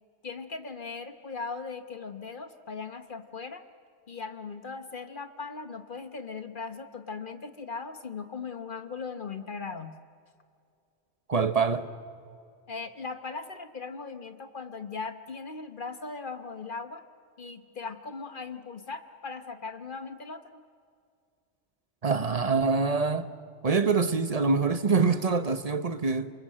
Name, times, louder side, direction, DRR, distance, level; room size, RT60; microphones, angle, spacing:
voice 1, 0.2-3.6 4.1-9.9 12.7-17.0 17.4-20.6, left 4 dB, 45° left, 1.1 m, -39 dB
voice 2, 11.3-11.9 22.0-23.3 23.6-26.3, right 4 dB, 35° right, 1.0 m, -25 dB
27.5 x 24.5 x 7.6 m
omnidirectional pair, 1.2 m